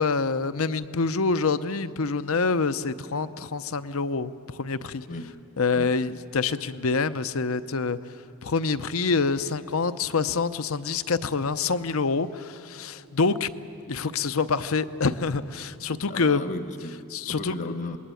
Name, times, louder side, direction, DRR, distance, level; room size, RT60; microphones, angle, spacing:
voice 1, 0.0-5.0 5.6-8.0 8.4-13.5 13.9-16.5 17.1-17.6, left 4 dB, 70° left, 0.8 m, -26 dB
voice 2, 5.1-5.4 5.7-5.9 16.1-18.0, left 2 dB, 50° left, 1.1 m, -35 dB
27.0 x 21.0 x 9.1 m
head